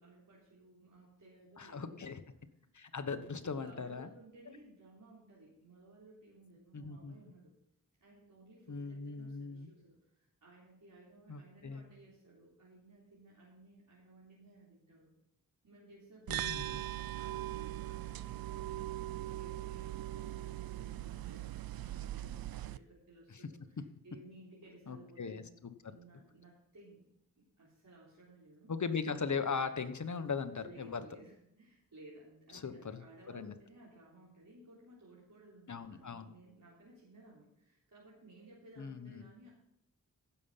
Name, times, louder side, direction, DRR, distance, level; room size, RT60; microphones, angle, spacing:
voice 1, 0.0-2.1 2.9-7.5 8.0-15.1 15.6-25.5 25.9-27.0 27.4-28.7 30.6-39.5, right 2 dB, 65° right, -7 dB, 3.7 m, -58 dB
voice 2, 1.6-2.2 2.7-4.1 6.7-7.1 8.7-9.7 11.3-11.9 16.3-16.6 23.3-23.4 24.9-25.7 28.7-31.0 32.5-33.0 33.3-33.5 35.7-36.3 38.8-39.3, left 5 dB, 55° left, 10 dB, 1.2 m, -39 dB
sound 1, 16.3-22.8, right 13 dB, 85° right, 0.5 m, -40 dB
15.5 x 7.0 x 5.6 m, 0.79 s
cardioid pair, 60°, 35 cm